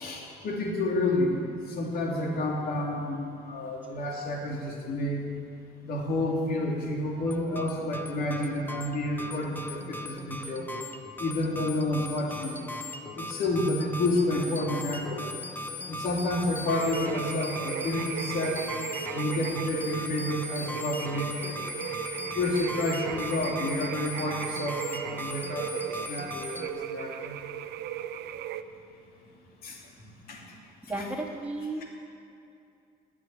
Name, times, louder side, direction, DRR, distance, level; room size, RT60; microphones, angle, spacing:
voice 1, 0.0-5.2 5.8-10.7 11.2-12.5 13.2-15.2 15.9-18.6 19.1-21.6 22.2-25.8 26.1-27.4 29.6-30.4, left 2 dB, 60° left, -1 dB, 2.9 m, -30 dB
sound 1, 7.3-26.7, left 1 dB, 10° left, 1.1 m, -38 dB
sound 2, 16.7-28.6, right 10 dB, 75° right, 0.7 m, -37 dB
voice 2, 30.9-31.8, right 2 dB, 10° right, -3 dB, 2.7 m, -33 dB
12.0 x 10.5 x 10.0 m, 2.6 s
cardioid pair, 110°, 17 cm